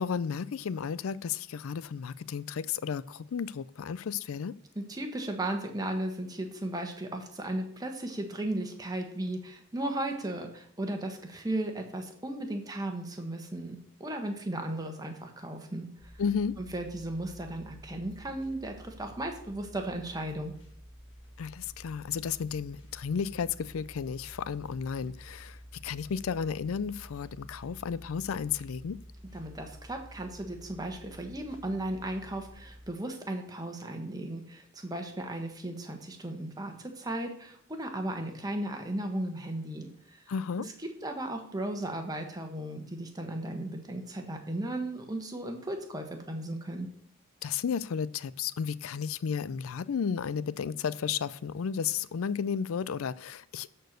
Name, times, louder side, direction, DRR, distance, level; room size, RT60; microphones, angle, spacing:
voice 1, 0.0-4.6 16.2-16.6 21.4-29.0 40.3-40.7 47.4-53.7, left 6 dB, 90° left, 0.4 m, -33 dB
voice 2, 4.7-15.9 16.6-20.5 29.3-40.2 41.0-46.9, right 1 dB, 20° right, 1.3 m, -36 dB
sound 1, 16.0-32.9, equal, 60° left, 1.7 m, -50 dB
13.0 x 4.5 x 6.6 m
head